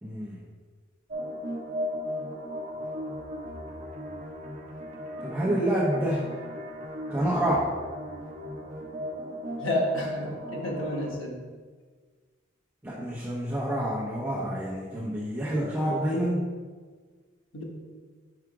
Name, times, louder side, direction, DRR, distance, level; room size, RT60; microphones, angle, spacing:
voice 1, 0.0-0.4 5.2-6.2 7.1-7.7 12.8-16.5, right 1 dB, 10° right, -7 dB, 0.8 m, -28 dB
sound 1, 1.1-11.1, equal, 40° right, 0.6 m, -36 dB
voice 2, 9.6-11.4 17.5-17.6, left 1 dB, 85° left, -1 dB, 1.3 m, -30 dB
4.9 x 4.8 x 4.7 m, 1.5 s
head